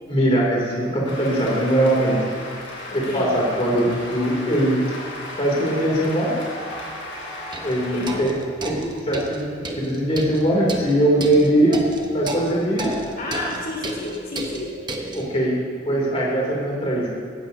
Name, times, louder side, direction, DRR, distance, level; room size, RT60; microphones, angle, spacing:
voice 1, 0.1-2.3 2.9-3.8 4.1-4.8 5.4-6.3 7.6-8.3 8.6-11.8 12.1-12.9 15.1-15.6 15.8-17.1, right 1 dB, 35° left, -4 dB, 2.8 m, -21 dB
Cheering / Applause, 1.1-8.2, left 1 dB, 75° left, 3.6 m, -35 dB
voice 2, 2.9-3.3 3.8-4.0 7.9-8.2 13.2-14.7, left 2 dB, 50° left, -5 dB, 2.7 m, -30 dB
sound 1, 7.5-15.3, right 2 dB, 25° right, 1.0 m, -34 dB
17.5 x 13.0 x 2.7 m, 2.3 s
head